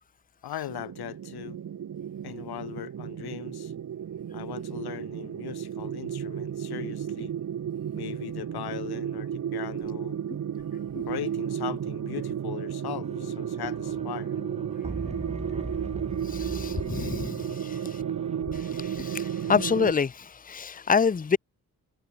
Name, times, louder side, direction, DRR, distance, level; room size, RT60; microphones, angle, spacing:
voice 1, 0.4-1.6 2.2-3.7 4.3-7.3 7.9-10.2 11.1-14.3, left 12 dB, 80° left, 1.5 m, -39 dB
sound 1, 0.7-19.9, right 9 dB, 50° right, 1.4 m, -33 dB
sound 2, 13.0-18.4, right 3 dB, 15° right, 4.4 m, -39 dB
voice 2, 16.2-18.0 18.5-21.4, left 6 dB, 20° left, 0.9 m, -27 dB
wide cardioid pair, 140°, 37 cm